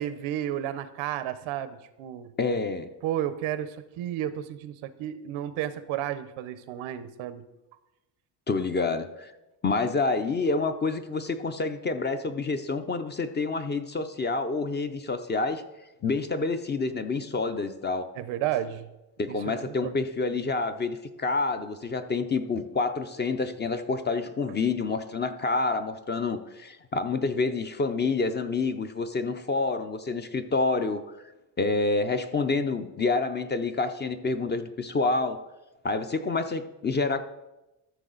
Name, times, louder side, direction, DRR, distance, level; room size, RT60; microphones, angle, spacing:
voice 1, 0.0-2.3 3.0-7.4 18.2-18.9 19.3-20.0 24.5-24.6, right 11 dB, 85° right, 14 dB, 0.8 m, -32 dB
voice 2, 2.4-2.9 8.5-9.3 9.6-15.6 16.0-18.1 19.2-31.0 31.6-35.4 35.8-37.2, left 3 dB, 25° left, 9 dB, 0.4 m, -28 dB
13.5 x 6.6 x 3.9 m, 0.99 s
cardioid pair, 140°, 47 cm